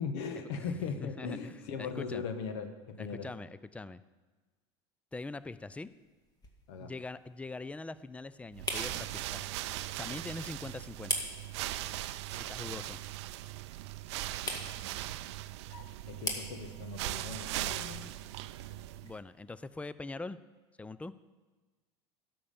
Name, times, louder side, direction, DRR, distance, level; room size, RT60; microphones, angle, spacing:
voice 1, 0.0-3.3 6.7-6.9 12.5-12.8 15.7-18.1, left 5 dB, 75° left, 8 dB, 1.2 m, -39 dB
voice 2, 1.0-2.2 3.0-4.0 5.1-5.9 6.8-9.4 10.0-11.1 12.3-13.0 19.0-20.4 20.8-21.1, left 3 dB, 10° left, 16 dB, 0.4 m, -42 dB
sound 1, 5.1-19.9, left 2 dB, 25° left, 1.8 m, -45 dB
sound 2, 8.5-19.2, right 15 dB, 75° right, 0.4 m, -39 dB
12.0 x 5.8 x 6.8 m, 1.3 s
hypercardioid pair, 90°, 15 cm